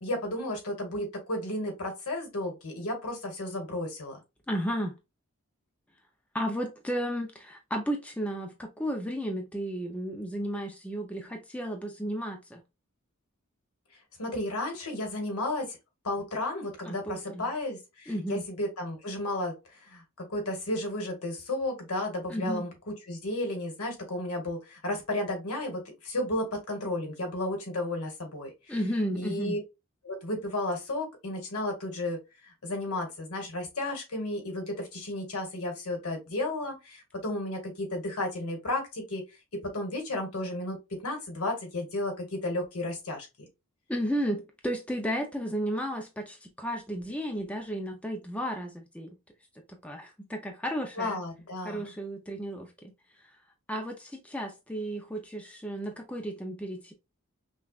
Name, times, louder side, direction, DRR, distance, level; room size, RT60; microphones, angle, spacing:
voice 1, 0.0-4.2 14.2-15.8 16.0-20.0 20.3-28.5 29.2-29.6 30.0-32.2 32.6-39.2 39.6-40.8 41.0-43.5 51.0-51.9, left 1 dB, 85° left, 1.5 m, -33 dB
voice 2, 4.5-5.0 6.3-12.6 16.8-17.5 18.1-18.4 22.3-22.6 28.7-29.6 43.9-49.2 49.7-51.2 51.6-52.7 53.7-56.9, equal, 5° left, 0.5 m, -33 dB
5.4 x 2.4 x 2.4 m
head